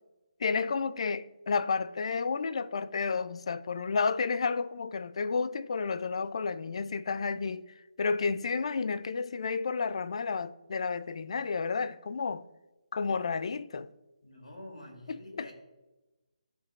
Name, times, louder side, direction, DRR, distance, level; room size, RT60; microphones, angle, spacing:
voice 1, 0.4-7.7 8.0-12.4 12.9-13.9 15.1-15.5, left 5 dB, 55° left, 0.3 m, -31 dB
voice 2, 14.2-15.5, left 1 dB, 80° left, 2.6 m, -47 dB
13.0 x 5.3 x 2.4 m
figure-of-eight pair, 150°, 4 cm